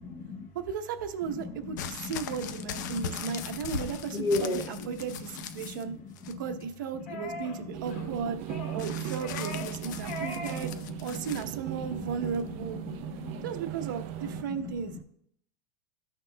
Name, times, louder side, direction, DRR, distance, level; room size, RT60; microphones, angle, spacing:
voice 1, 0.0-0.5 1.3-2.1 2.8-3.6 4.1-4.9 5.6-6.0 6.2-6.4 9.8-10.8 11.1-11.3 12.9-13.4 14.2-14.7, left 3 dB, 30° left, 5 dB, 0.9 m, -36 dB
voice 2, 0.5-5.9 6.4-8.4 8.7-10.7 11.0-12.8 13.4-15.0, right 6 dB, 85° right, 7 dB, 0.9 m, -35 dB
sound 1, 1.8-5.8 6.2-6.7 8.8-11.5 12.3-12.4, left 8 dB, 70° left, 0.6 m, -40 dB
sound 2, 7.1-7.6 7.8-8.1 8.5-8.8 9.2-9.8 10.0-10.6 10.9-11.1, left 2 dB, 55° left, 2.2 m, -39 dB
sound 3, 7.7-14.4, right 13 dB, 35° right, 0.4 m, -38 dB
15.0 x 5.9 x 2.2 m, 0.72 s
supercardioid pair, 180°, 10 cm